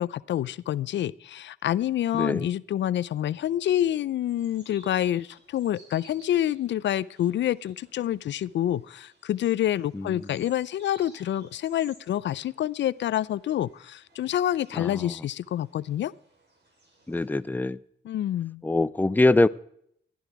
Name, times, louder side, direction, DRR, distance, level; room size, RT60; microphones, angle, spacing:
voice 1, 0.0-16.1 18.1-18.6, left 11 dB, 70° left, 20 dB, 0.4 m, -27 dB
voice 2, 2.1-2.5 9.9-10.3 14.7-15.1 17.1-17.8 18.6-19.5, left 2 dB, 10° left, 16 dB, 0.5 m, -24 dB
sound 1, 4.2-17.4, right 2 dB, 65° right, 4.5 m, -58 dB
15.0 x 11.0 x 4.7 m, 0.68 s
cardioid pair, 70°, 19 cm